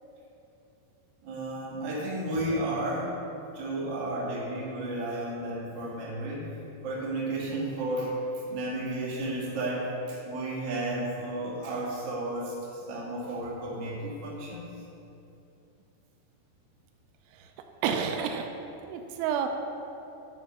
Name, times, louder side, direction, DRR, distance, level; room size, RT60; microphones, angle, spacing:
voice 1, 1.2-3.2 3.5-6.5 6.8-8.2 8.5-14.7, right 1 dB, 45° right, -7 dB, 1.5 m, -33 dB
voice 2, 17.8-18.5 18.9-19.5, right 7 dB, 85° right, 5 dB, 2.9 m, -29 dB
11.5 x 4.5 x 6.0 m, 2.9 s
omnidirectional pair, 5.3 m